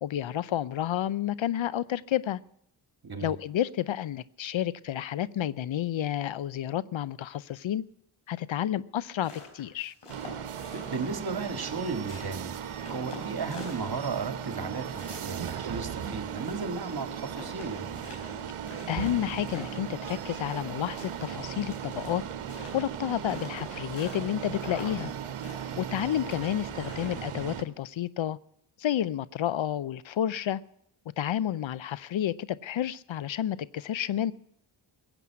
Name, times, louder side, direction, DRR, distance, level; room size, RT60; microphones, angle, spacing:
voice 1, 0.0-2.4 3.2-7.8 8.3-9.9 18.9-22.2 22.7-25.1 25.8-28.4 28.8-30.6 31.2-34.3, left 11 dB, 65° left, 0.7 m, -30 dB
voice 2, 3.0-3.3 10.4-17.9, right 4 dB, 45° right, 2.1 m, -35 dB
sound 1, 9.0-11.3 11.6-14.2 14.5-16.8 17.1-17.2 17.3-20.7 21.0-24.3 24.6-25.1 25.4-27.4, left 3 dB, 90° left, 4.7 m, -46 dB
sound 2, 10.1-27.6, right 8 dB, 80° right, 1.2 m, -37 dB
16.0 x 8.1 x 9.4 m
cardioid pair, 50°, 50 cm